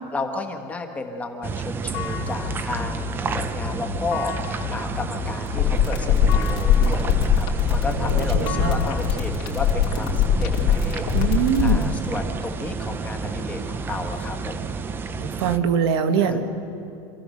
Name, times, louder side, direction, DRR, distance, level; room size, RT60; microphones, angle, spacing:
voice 1, 0.1-14.7 16.1-16.4, left 3 dB, 10° left, 3 dB, 1.4 m, -33 dB
sound 1, 1.4-15.6, right 5 dB, 15° right, 0.5 m, -31 dB
sound 2, 1.9-10.6, left 12 dB, 45° left, 1.7 m, -34 dB
sound 3, 5.5-11.8, left 9 dB, 70° left, 2.7 m, -20 dB
voice 2, 7.8-8.8 11.1-11.9 15.2-16.4, right 7 dB, 85° right, 7 dB, 1.6 m, -23 dB
26.5 x 15.0 x 6.6 m, 2.9 s
cardioid pair, 180°, 13 cm